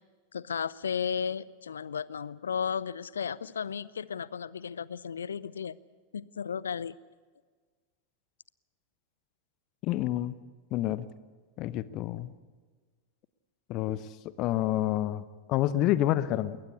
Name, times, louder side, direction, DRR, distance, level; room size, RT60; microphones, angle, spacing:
voice 1, 0.3-5.8 6.1-7.0, left 7 dB, 70° left, 21 dB, 0.6 m, -34 dB
voice 2, 9.8-10.3 10.7-11.1 11.6-12.3 13.7-16.6, left 13 dB, 40° left, 17 dB, 1.0 m, -29 dB
21.0 x 19.5 x 8.6 m, 1.5 s
figure-of-eight pair, 90°, 0 cm